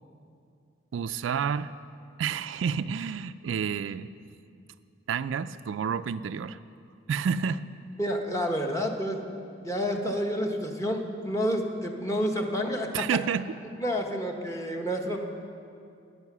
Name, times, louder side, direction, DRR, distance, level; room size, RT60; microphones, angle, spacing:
voice 1, 0.9-1.7 2.2-4.1 5.1-6.6 7.1-7.6 12.9-13.5, right 7 dB, 80° right, 13 dB, 0.3 m, -29 dB
voice 2, 8.0-9.2 9.6-13.0 13.8-15.2, equal, 15° left, 2 dB, 1.1 m, -29 dB
13.5 x 10.0 x 6.1 m, 2.5 s
head